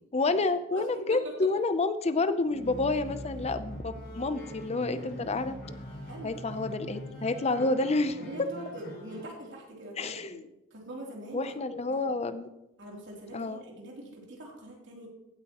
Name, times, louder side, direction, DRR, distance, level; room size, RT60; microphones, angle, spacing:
voice 1, 0.1-5.6 6.2-8.2 10.0-10.5 11.3-12.5 13.3-13.6, left 3 dB, 30° left, 11 dB, 0.6 m, -29 dB
voice 2, 0.7-1.3 6.1-6.6 8.2-10.4 10.7-12.1 12.8-15.1, right 1 dB, 60° right, -2 dB, 3.2 m, -43 dB
sound 1, 2.5-9.2, equal, 55° left, 4.8 m, -42 dB
16.0 x 8.7 x 3.0 m, 0.90 s
head